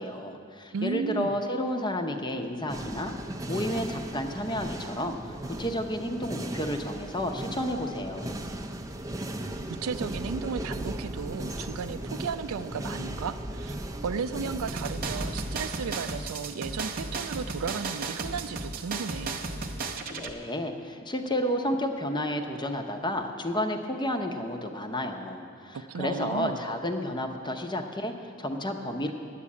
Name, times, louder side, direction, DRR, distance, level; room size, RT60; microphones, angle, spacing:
voice 1, 0.0-3.1 3.5-8.4 20.1-29.1, left 1 dB, 20° left, 5 dB, 0.7 m, -31 dB
voice 2, 0.7-1.4 9.7-13.8 14.0-19.4 25.7-26.6, right 5 dB, 75° right, 12 dB, 0.4 m, -34 dB
sound 1, 2.7-15.7, right 1 dB, 15° right, 0.5 m, -36 dB
sound 2, 14.7-20.3, right 3 dB, 40° right, 0.8 m, -34 dB
9.9 x 8.3 x 8.4 m, 2.4 s
head